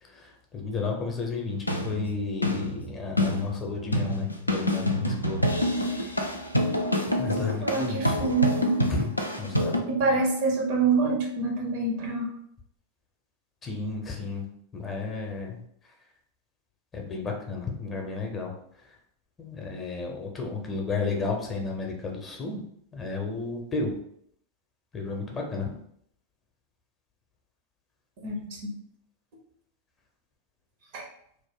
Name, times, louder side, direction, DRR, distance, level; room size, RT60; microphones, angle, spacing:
voice 1, 0.0-6.1 7.2-8.1 8.9-9.1 9.4-9.8 10.1-10.2 13.6-14.5 14.7-15.6 16.9-18.5 19.4-22.6 22.9-23.9 24.9-25.7, left 4 dB, 20° left, 1 dB, 0.6 m, -32 dB
sound 1, 1.5-9.8, equal, 85° left, 0.3 m, -27 dB
voice 2, 7.6-8.7 9.9-12.3 28.2-28.7 30.9-31.1, right 4 dB, 50° right, 2 dB, 0.6 m, -26 dB
2.5 x 2.1 x 3.5 m, 0.69 s
figure-of-eight pair, 90°, 0 cm